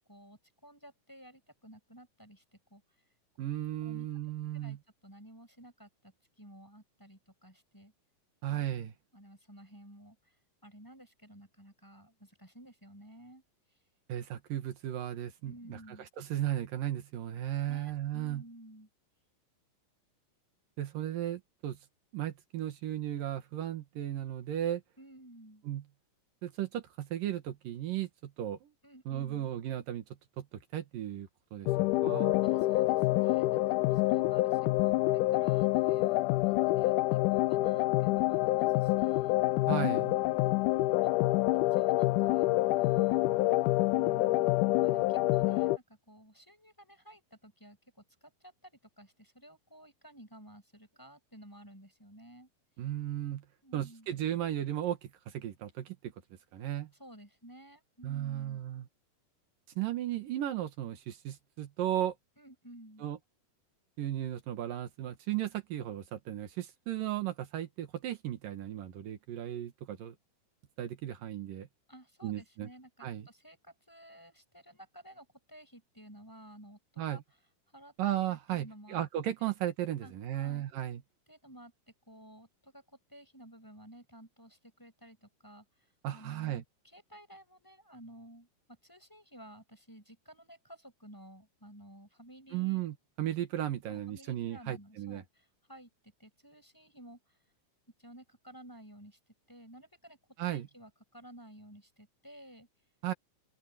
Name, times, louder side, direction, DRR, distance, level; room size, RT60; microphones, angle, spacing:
voice 1, 0.1-2.4 2.7-2.8 3.8-4.1 4.5-4.8 5.0-7.9 9.1-10.3 10.6-13.4 15.4-16.1 17.7-18.9 25.0-25.6 28.8-29.5 32.4-39.4 40.4-41.1 41.7-43.4 43.9-47.8 48.2-52.5 53.6-54.1 57.0-58.6 62.4-63.1 71.9-77.2 77.7-77.9 78.3-79.0 79.4-79.5 80.0-80.6 81.3-81.7 82.1-85.6 86.1-88.5 88.8-92.8 93.9-95.9 96.2-97.4 98.0-99.2 99.5-100.2 100.4-102.7, right 1 dB, 5° left, 6.1 m, -54 dB
voice 2, 3.4-4.8 8.4-8.9 14.1-15.8 16.2-18.4 20.8-21.8 22.1-24.8 25.6-25.8 26.4-28.7 29.1-30.0 30.4-32.3 39.7-40.2 52.8-53.4 53.7-56.1 56.5-56.9 58.0-58.9 59.8-62.1 63.0-63.2 64.0-70.1 70.8-71.7 72.2-72.7 73.0-73.3 77.0-77.2 78.0-81.0 86.0-86.6 92.5-95.2 100.4-100.7 103.0-103.1, right 12 dB, 80° right, 3.2 m, -35 dB
sound 1, 31.7-45.8, left 18 dB, 80° left, 1.9 m, -27 dB
open air
omnidirectional pair, 3.9 m